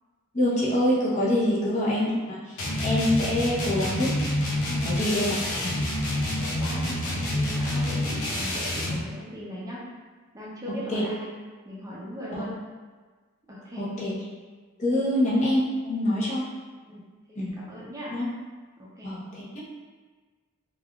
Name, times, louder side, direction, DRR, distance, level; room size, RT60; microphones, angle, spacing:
voice 1, 0.3-2.4 2.8-4.1 4.8-5.7 10.9-11.0 13.8-14.1 14.8-16.4 17.4-17.5 18.1-18.3 19.0-19.2, left 1 dB, 35° left, -7 dB, 0.7 m, -25 dB
sound 1, 2.6-9.1, left 1 dB, 80° left, 0.5 m, -28 dB
voice 2, 4.7-5.1 6.2-9.8 10.3-11.3 11.6-12.6 13.5-13.9 14.9-15.1 16.0-16.2 16.8-17.0 17.5-18.2 18.8-19.1, equal, 15° right, -6 dB, 0.5 m, -39 dB
3.3 x 2.3 x 2.3 m, 1.4 s
head